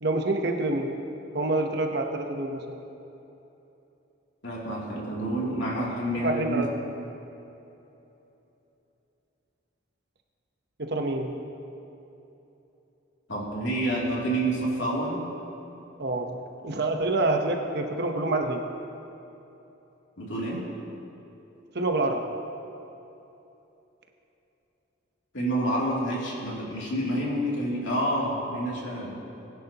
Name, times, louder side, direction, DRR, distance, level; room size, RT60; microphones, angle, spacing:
voice 1, 0.0-0.9 1.3-2.8 6.2-6.7 10.8-11.4 16.0-18.6 21.7-22.2, right 2 dB, 55° right, 3 dB, 1.0 m, -27 dB
voice 2, 4.4-6.7 13.3-15.2 20.2-20.7 25.3-29.2, right 1 dB, 70° left, -5 dB, 3.0 m, -28 dB
20.5 x 10.5 x 3.0 m, 3.0 s
head